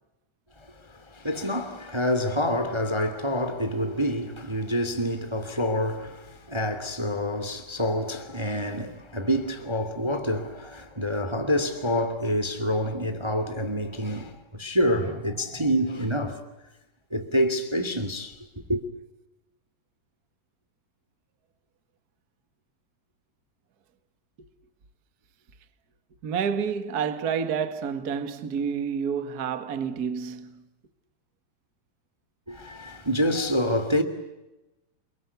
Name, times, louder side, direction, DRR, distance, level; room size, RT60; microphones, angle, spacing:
voice 1, 0.8-16.4 17.1-18.8 32.5-34.0, equal, 15° right, 1.1 m, -27 dB
voice 2, 26.2-30.6, right 7 dB, 60° right, 1.0 m, -29 dB
30.0 x 22.5 x 8.3 m
omnidirectional pair, 4.7 m